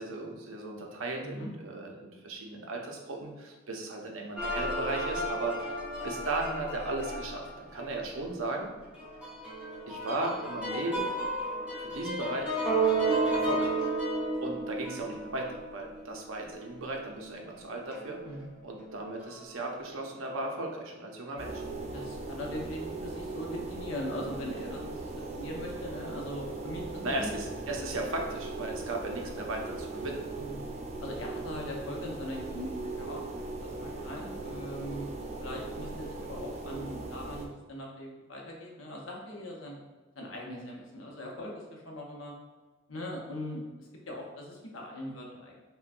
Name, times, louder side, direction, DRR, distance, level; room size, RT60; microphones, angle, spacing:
voice 1, 0.0-5.7 6.0-8.7 9.9-11.1 11.8-12.6 13.3-13.8 14.4-18.2 18.6-21.6 27.0-30.2, right 2 dB, 80° right, 1 dB, 0.7 m, -36 dB
sound 1, 4.4-8.0 8.5-8.6 8.9-16.9 17.2-17.4 17.9-18.3 18.8-19.5, right 2 dB, 5° right, 0.9 m, -33 dB
sound 2, 21.4-37.5, right 2 dB, 35° right, 0.5 m, -39 dB
voice 2, 21.9-27.3 30.4-30.6 31.0-32.7 33.0-33.2 33.6-35.1 35.4-39.8 40.2-42.3 42.9-45.5, left 1 dB, 75° left, -1 dB, 0.8 m, -40 dB
5.6 x 2.2 x 2.5 m, 1.3 s
head